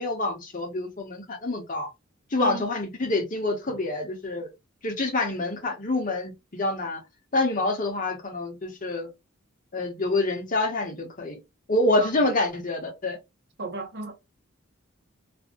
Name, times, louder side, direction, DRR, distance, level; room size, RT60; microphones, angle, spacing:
voice 1, 0.0-1.9 2.3-4.5 4.8-7.0 7.3-9.1 9.7-11.4 11.7-13.2, left 2 dB, 40° left, 0.8 m, -27 dB
voice 2, 13.6-14.1, right 2 dB, 50° right, 0.8 m, -32 dB
2.5 x 2.2 x 3.6 m
head